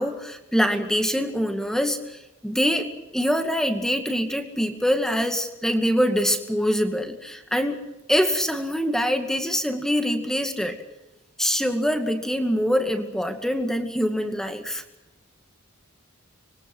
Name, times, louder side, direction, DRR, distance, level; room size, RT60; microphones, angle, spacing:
voice 1, 0.0-7.8 8.1-10.8 11.4-14.8, equal, ahead, 6 dB, 2.2 m, -24 dB
26.0 x 22.5 x 6.2 m, 0.98 s
head